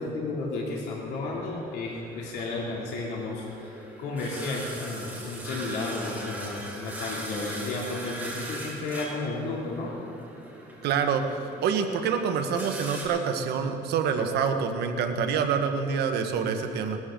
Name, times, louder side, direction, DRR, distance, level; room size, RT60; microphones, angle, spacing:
voice 1, 0.0-9.9, left 3 dB, 80° left, -3 dB, 2.8 m, -33 dB
sound 1, 1.1-13.1, right 1 dB, 10° right, 3.2 m, -41 dB
voice 2, 10.8-11.2 11.6-17.0, right 6 dB, 75° right, 6 dB, 1.4 m, -26 dB
20.5 x 14.0 x 3.8 m, 2.7 s
cardioid pair, 110°, 17 cm